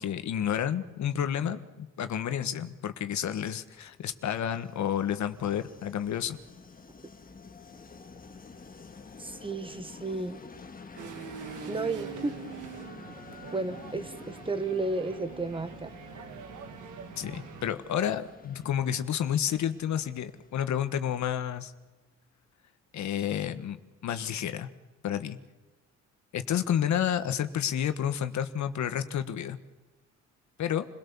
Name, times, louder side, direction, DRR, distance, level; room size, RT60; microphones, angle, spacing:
voice 1, 0.0-6.4 17.2-21.7 22.9-24.7 25.0-25.4 26.3-29.6 30.6-30.9, left 9 dB, 65° left, 10 dB, 1.5 m, -30 dB
Train, 3.8-21.5, left 4 dB, 30° left, 1.8 m, -50 dB
voice 2, 9.2-10.4 11.7-12.4 13.5-16.2, right 3 dB, 15° right, 10 dB, 1.6 m, -33 dB
sound 1, 11.0-17.7, right 7 dB, 85° right, 2.2 m, -44 dB
29.0 x 17.5 x 7.0 m, 1.2 s
cardioid pair, 90°, 30 cm